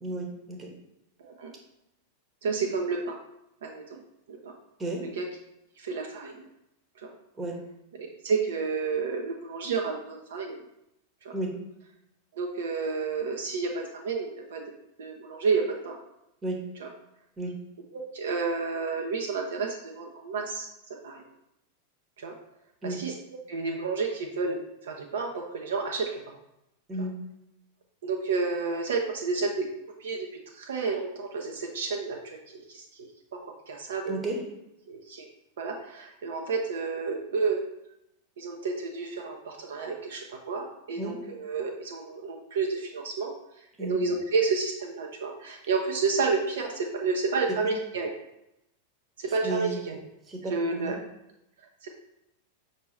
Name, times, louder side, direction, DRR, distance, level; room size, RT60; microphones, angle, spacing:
voice 1, 0.0-0.7 4.8-5.0 7.3-7.6 11.3-11.6 16.4-16.6 17.4-17.6 22.8-23.0 26.9-27.1 34.1-34.4 41.0-41.1 43.8-44.0 47.5-47.7 49.2-49.8 50.2-51.0, right 1 dB, 20° right, 1 dB, 0.9 m, -33 dB
voice 2, 1.2-1.5 2.4-3.2 3.6-3.8 4.3-4.5 5.2-5.3 5.8-6.4 7.0-7.1 8.0-10.6 11.2-11.3 12.3-14.6 15.0-16.0 16.8-16.9 17.9-20.7 21.0-21.2 22.2-22.3 22.8-23.1 23.5-26.2 28.0-29.7 30.0-30.3 30.5-33.1 33.7-34.1 34.9-35.3 35.6-37.6 38.4-43.3 43.9-48.1 49.2-50.0 50.5-50.9 51.8-51.9, right 4 dB, 60° right, 2 dB, 0.5 m, -30 dB
5.2 x 2.6 x 3.1 m, 0.85 s
figure-of-eight pair, 90°, 0 cm